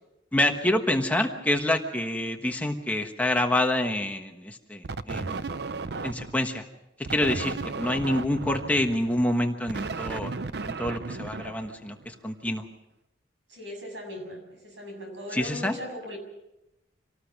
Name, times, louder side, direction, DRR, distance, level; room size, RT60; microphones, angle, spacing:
voice 1, 0.3-5.4 6.0-6.6 7.0-10.3 10.7-12.6 15.3-15.8, left 1 dB, 10° left, 4 dB, 1.2 m, -27 dB
sound 1, 4.8-6.5 7.1-12.2, right 3 dB, 60° right, 0.7 m, -35 dB
voice 2, 13.5-16.2, left 1 dB, 75° right, 3 dB, 7.4 m, -39 dB
26.5 x 18.5 x 6.1 m, 0.91 s
head